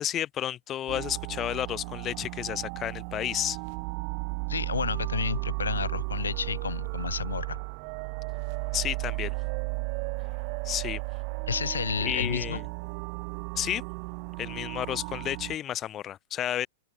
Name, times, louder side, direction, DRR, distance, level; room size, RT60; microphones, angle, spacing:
voice 1, 0.0-3.6 8.7-9.4 10.6-11.0 12.0-12.6 13.5-13.8 14.4-16.7, left 11 dB, 30° left, 1.0 m, -31 dB
sound 1, 0.9-15.6, right 40 dB or more, 45° right, 0.4 m, -34 dB
voice 2, 4.5-7.6 11.5-12.6, left 6 dB, 80° left, 1.8 m, -31 dB
figure-of-eight pair, 100°, 0 cm